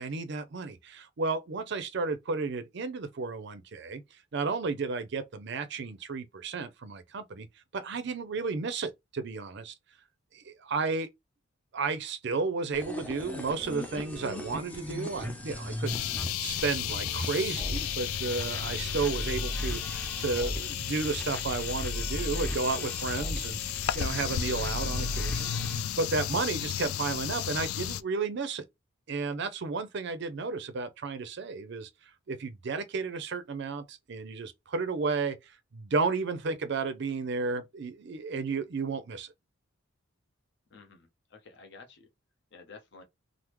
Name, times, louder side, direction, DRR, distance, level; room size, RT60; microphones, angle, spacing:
voice 1, 0.0-4.0 4.3-7.5 7.7-9.7 10.3-11.1 11.7-25.5 26.0-28.7 29.1-31.9 32.3-35.4 35.7-39.3, right 4 dB, 55° right, 0.5 m, -33 dB
sound 1, 12.7-25.9, left 1 dB, 5° left, 0.5 m, -37 dB
sound 2, 15.9-28.0, left 10 dB, 90° left, 0.3 m, -34 dB
voice 2, 40.7-42.1 42.5-43.0, left 4 dB, 55° left, 0.7 m, -51 dB
3.4 x 2.0 x 3.0 m
head